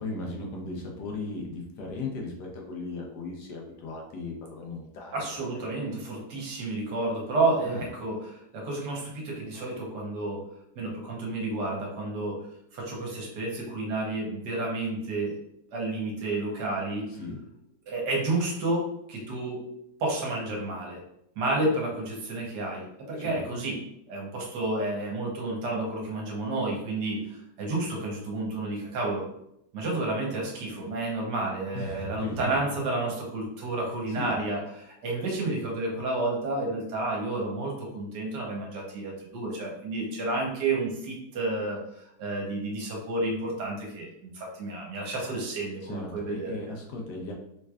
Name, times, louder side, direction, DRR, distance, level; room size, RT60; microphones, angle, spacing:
voice 1, 0.0-5.4 7.6-7.9 17.1-17.4 23.2-23.6 31.7-32.7 34.2-34.3 45.8-47.3, left 3 dB, 70° left, 0 dB, 1.3 m, -37 dB
voice 2, 5.1-10.4 10.8-12.4 12.7-15.3 15.7-17.1 17.9-19.6 20.0-21.0 21.4-23.8 24.1-29.2 29.7-41.8 42.2-46.5, right 2 dB, 75° right, -1 dB, 1.5 m, -30 dB
3.7 x 3.2 x 2.3 m, 0.78 s
omnidirectional pair, 1.9 m